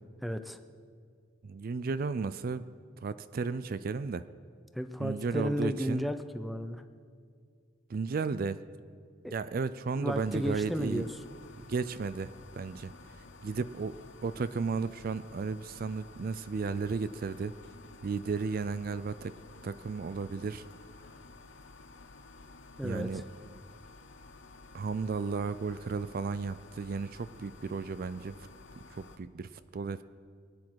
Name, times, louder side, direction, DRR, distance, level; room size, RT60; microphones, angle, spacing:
voice 1, 0.2-0.6 4.7-6.8 9.2-9.3 10.0-11.1 22.8-23.2, equal, ahead, 8 dB, 0.6 m, -33 dB
voice 2, 1.4-2.6 3.0-4.2 5.0-6.1 7.9-8.6 9.3-11.1 11.7-12.9 13.4-14.0 14.2-17.5 18.0-19.3 19.6-20.6 22.8-23.2 24.7-28.3 28.9-30.0, right 4 dB, 50° right, 14 dB, 0.4 m, -34 dB
sound 1, 10.1-29.2, left 3 dB, 80° left, 0.9 m, -53 dB
22.5 x 9.7 x 4.6 m, 2.2 s
head